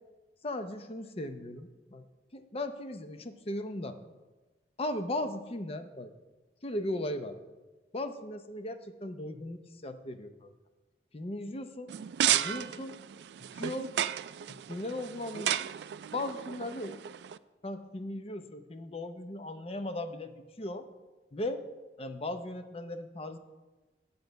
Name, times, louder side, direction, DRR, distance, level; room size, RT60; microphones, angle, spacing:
voice 1, 0.4-2.0 2.3-4.0 4.8-6.1 6.6-7.4 7.9-10.5 11.1-11.9 12.2-13.0 13.5-13.9 14.7-15.7 16.1-17.0 17.6-20.9 21.3-21.6 22.0-23.4, left 1 dB, 35° left, 8 dB, 0.6 m, -37 dB
sound 1, 11.9-17.4, right 11 dB, 70° right, 0.3 m, -33 dB
9.5 x 5.2 x 7.9 m, 1.2 s
head